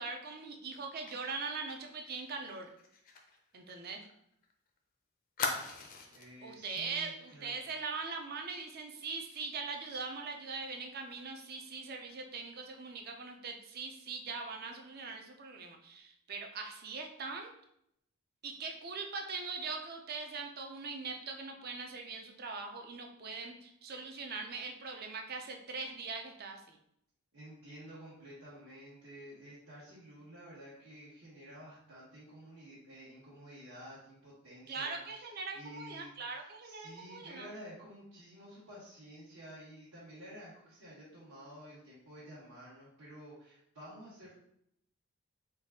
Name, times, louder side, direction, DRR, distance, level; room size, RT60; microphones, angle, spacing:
voice 1, 0.0-2.7 3.5-4.1 6.4-17.5 18.4-26.8 34.7-37.5, right 4 dB, 45° right, 3 dB, 0.5 m, -41 dB
Fire, 1.1-4.5 4.8-4.9 5.4-6.3 6.8-6.9 7.3-7.5, left 4 dB, 40° left, 0.4 m, -41 dB
voice 2, 6.1-7.6 27.3-44.4, equal, 75° right, -11 dB, 1.2 m, -51 dB
3.9 x 2.3 x 3.6 m, 0.75 s
head